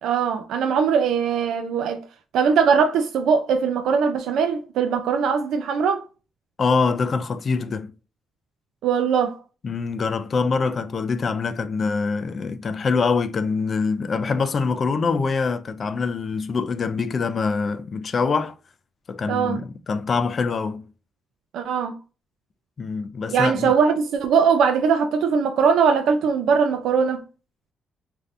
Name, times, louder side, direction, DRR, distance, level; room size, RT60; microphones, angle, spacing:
voice 1, 0.0-2.0 2.3-6.1 8.8-9.4 19.3-19.6 21.5-22.0 23.3-27.2, right 6 dB, 80° right, 0.4 m, -21 dB
voice 2, 6.6-7.9 9.6-18.6 19.1-20.9 22.8-23.7, left 4 dB, 40° left, 0.3 m, -24 dB
3.2 x 2.6 x 2.5 m
cardioid pair, 130°, 0 cm